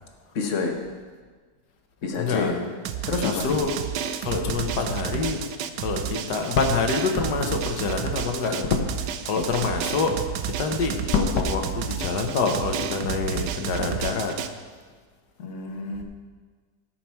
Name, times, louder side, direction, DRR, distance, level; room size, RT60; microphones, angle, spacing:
voice 1, 0.3-0.8 2.0-2.6 3.1-3.6 15.4-16.0, left 4 dB, 50° left, 3 dB, 1.3 m, -28 dB
voice 2, 2.2-2.5 3.2-3.7 4.2-5.4 5.8-8.9 9.3-10.2 10.6-14.3, left 4 dB, 70° left, 3 dB, 1.7 m, -25 dB
Drum, 2.8-14.5, right 9 dB, 70° right, 1.1 m, -31 dB
16.0 x 6.0 x 4.5 m, 1.5 s
omnidirectional pair, 1.9 m